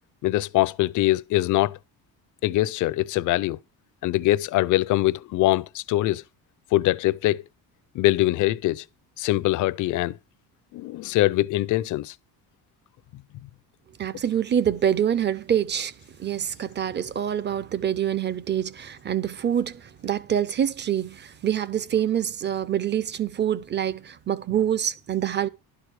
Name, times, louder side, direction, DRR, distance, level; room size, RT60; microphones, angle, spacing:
voice 1, 0.2-1.8 2.4-3.6 4.0-6.2 6.7-7.4 7.9-8.8 9.2-10.2 10.7-12.1, left 16 dB, 55° left, 0.4 m, -23 dB
voice 2, 14.0-15.9 16.2-25.5, right 9 dB, 30° right, 0.5 m, -26 dB
11.5 x 4.8 x 6.2 m
cardioid pair, 175°, 38 cm